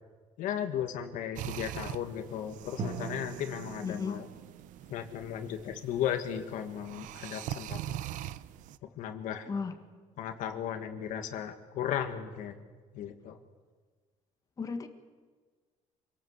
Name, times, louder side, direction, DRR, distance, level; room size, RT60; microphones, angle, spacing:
voice 1, 0.4-4.2 4.9-8.0 9.0-9.5 10.2-12.6 12.9-13.4, left 9 dB, 85° left, 7 dB, 1.8 m, -35 dB
sound 1, 1.4-8.8, right 12 dB, 85° right, 0.7 m, -43 dB
Drum, 2.8-6.6, right 4 dB, 55° right, 2.8 m, -43 dB
voice 2, 3.8-4.2 9.5-9.8 14.6-14.9, left 5 dB, 25° left, 7 dB, 1.6 m, -34 dB
26.0 x 18.0 x 8.1 m, 1.5 s
cardioid pair, 145°, 13 cm